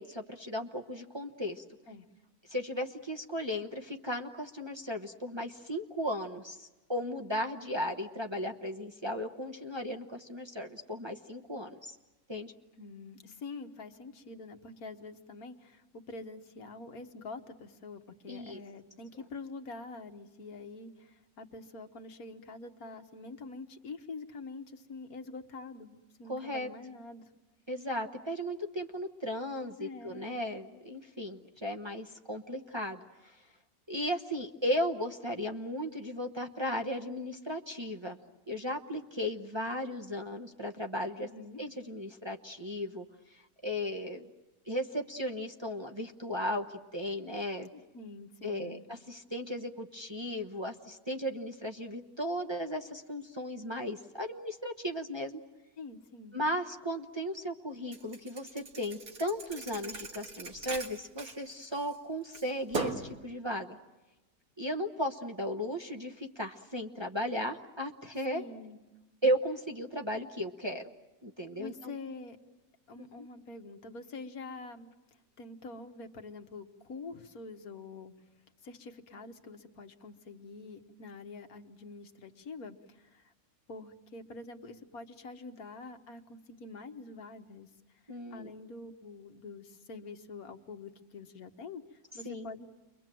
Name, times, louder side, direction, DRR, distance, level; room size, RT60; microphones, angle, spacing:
voice 1, 0.0-1.6 2.5-12.0 12.3-12.5 18.3-18.6 26.3-26.7 27.7-33.4 33.9-38.2 38.5-41.3 41.6-44.3 44.7-47.7 48.4-55.4 56.3-63.8 64.6-68.4 69.2-70.8 71.2-71.9 73.0-73.3 88.1-88.5 92.2-92.5, equal, 20° right, 2 dB, 1.0 m, -36 dB
voice 2, 12.7-27.2 29.8-30.4 41.2-41.6 47.7-48.8 55.8-56.4 68.3-68.8 71.6-72.4 72.9-78.1 78.6-83.3 83.7-92.7, left 3 dB, 75° left, 6 dB, 1.8 m, -46 dB
Thump thud, 57.9-62.0 62.3-63.2, right 3 dB, 75° right, 2.2 m, -39 dB
30.0 x 23.0 x 7.7 m, 1.1 s
omnidirectional pair, 1.6 m